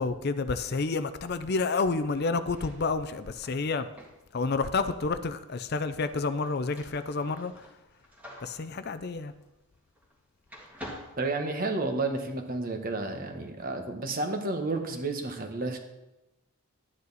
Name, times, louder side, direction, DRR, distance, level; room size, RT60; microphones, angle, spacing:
voice 1, 0.0-3.9 4.3-7.7 8.4-9.3, left 4 dB, 45° left, 12 dB, 0.5 m, -29 dB
sound 1, 2.4-10.2 10.5-12.1, equal, 5° right, 1.7 m, -49 dB
voice 2, 11.2-15.8, right 3 dB, 40° right, 4 dB, 1.2 m, -31 dB
12.0 x 9.4 x 4.1 m, 0.97 s
head